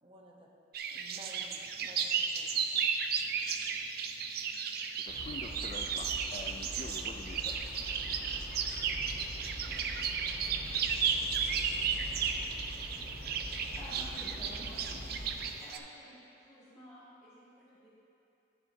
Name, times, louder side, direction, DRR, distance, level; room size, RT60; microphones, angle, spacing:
voice 1, 0.0-0.5 0.9-3.0, right 1 dB, 30° right, -1 dB, 1.0 m, -54 dB
sound 1, 0.7-15.8, right 6 dB, 55° right, 0.4 m, -34 dB
sound 2, 1.2-12.7, equal, 75° right, 1.8 m, -62 dB
voice 2, 5.0-7.6, left 3 dB, 35° left, 4 dB, 0.4 m, -46 dB
sound 3, 5.1-15.5, equal, 70° left, 1.9 m, -44 dB
voice 3, 13.7-15.2 15.6-17.9, equal, 10° left, -15 dB, 1.8 m, -51 dB
9.7 x 9.5 x 2.8 m, 2.9 s
head